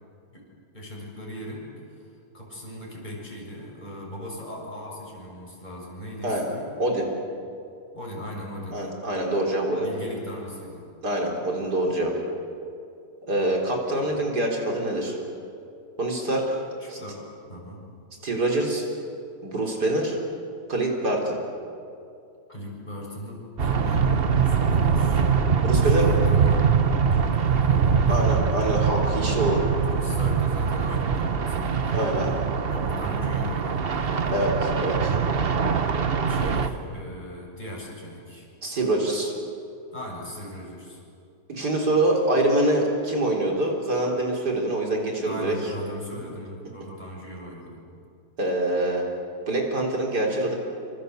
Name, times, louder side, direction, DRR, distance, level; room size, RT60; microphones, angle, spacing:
voice 1, 0.7-1.7 2.0-2.1 2.3-6.7 7.9-8.8 9.8-10.8 16.8-17.8 22.5-25.2 25.8-28.2 29.9-32.2 32.7-34.4 36.3-38.5 39.9-41.0 45.2-47.8, left 1 dB, 25° left, -2 dB, 7.4 m, -38 dB
voice 2, 8.7-9.9 11.0-12.1 13.3-15.2 16.0-16.6 16.9-17.0 18.2-18.9 19.4-20.2 20.7-21.4 25.6-26.1 28.1-29.7 31.9-32.3 34.3-35.2 38.6-39.4 41.5-45.6 48.4-49.0 49.5-50.6, right 1 dB, 70° right, -1 dB, 4.4 m, -25 dB
sound 1, 23.6-36.7, right 6 dB, 40° right, 1.1 m, -23 dB
26.5 x 26.0 x 8.2 m, 2.5 s
omnidirectional pair, 1.8 m